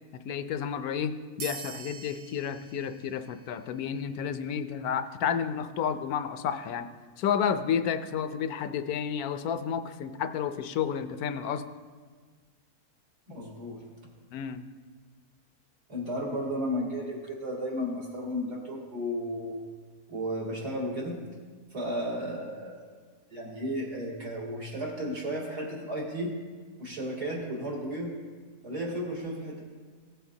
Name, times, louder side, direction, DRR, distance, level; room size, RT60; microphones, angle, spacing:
voice 1, 0.1-6.9 7.2-11.6 14.3-14.6, left 8 dB, 75° left, 10 dB, 1.0 m, -31 dB
sound 1, 1.4-4.4, right 6 dB, 55° right, 0.8 m, -45 dB
voice 2, 13.3-13.8 15.9-19.6 20.1-21.2 21.7-22.8 23.3-26.3 26.8-28.1 28.6-29.6, equal, 80° right, -5 dB, 3.0 m, -33 dB
16.0 x 7.9 x 2.7 m, 1.5 s
omnidirectional pair, 1.6 m